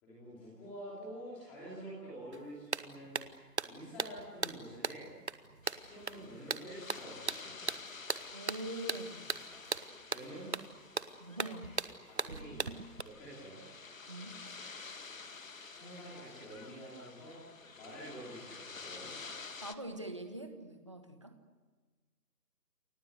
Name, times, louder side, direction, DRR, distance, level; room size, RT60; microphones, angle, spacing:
voice 1, 0.0-3.3 3.6-5.2 5.8-7.6 10.1-10.5 12.1-12.7 13.0-13.6 15.4-17.4 17.7-19.1, right 1 dB, 5° left, -6 dB, 3.1 m, -48 dB
sound 1, 2.3-2.4 2.7-13.0, right 4 dB, 45° right, 1.2 m, -39 dB
sound 2, 5.6-19.7, left 4 dB, 55° left, 1.9 m, -50 dB
voice 2, 8.3-9.3 11.2-11.8 14.1-14.4 19.6-21.4, right 1 dB, 20° right, 7 dB, 1.3 m, -43 dB
29.0 x 23.0 x 8.2 m, 1.4 s
hypercardioid pair, 180°, 48 cm